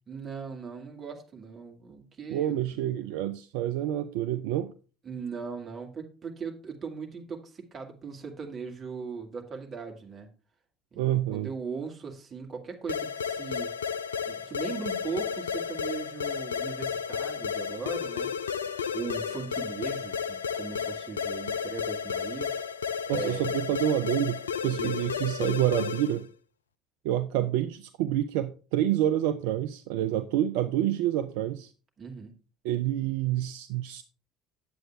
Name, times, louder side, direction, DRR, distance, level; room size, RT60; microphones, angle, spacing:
voice 1, 0.1-2.8 5.0-10.3 10.9-13.7 14.3-18.3 18.9-22.6 23.1-23.5 24.7-25.0 32.0-32.3, right 5 dB, 35° right, 2 dB, 2.1 m, -39 dB
voice 2, 2.3-4.7 11.0-11.5 23.1-26.3 27.0-31.7 32.6-34.0, right 12 dB, 65° right, 11 dB, 0.4 m, -28 dB
sound 1, 12.9-26.2, left 6 dB, 80° left, 0.3 m, -32 dB
9.4 x 7.8 x 3.4 m, 0.36 s
figure-of-eight pair, 60°, 0 cm